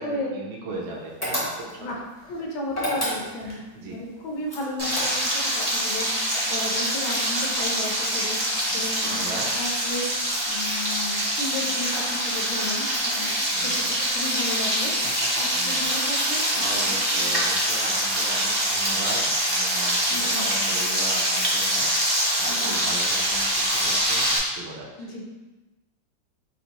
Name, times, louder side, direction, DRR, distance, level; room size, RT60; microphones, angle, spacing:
voice 1, 0.0-1.9 3.4-4.0 8.7-9.5 13.5-13.9 15.5-15.9 16.5-25.2, right 2 dB, 85° right, -2 dB, 1.4 m, -38 dB
sound 1, 1.2-1.9 2.7-3.6 4.5-5.5, equal, 15° left, 0.5 m, -29 dB
voice 2, 2.3-10.1 10.5-14.9 15.4-16.5 16.9-17.3 20.1-20.5 22.4-22.8 25.0-25.2, left 1 dB, 75° left, -1 dB, 1.5 m, -34 dB
Frying (food), 4.8-24.4, equal, 40° right, 0.3 m, -24 dB
4.2 x 2.6 x 4.0 m, 1.2 s
omnidirectional pair, 2.2 m